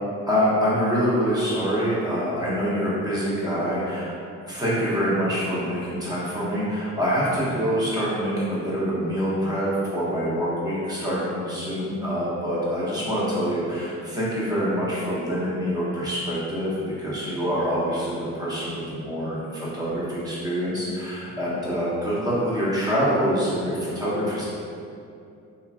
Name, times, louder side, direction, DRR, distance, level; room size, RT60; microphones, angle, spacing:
voice 1, 0.3-4.1 4.5-24.4, equal, 15° right, -9 dB, 0.9 m, -25 dB
2.8 x 2.6 x 2.3 m, 2.5 s
cardioid pair, 90°, 30 cm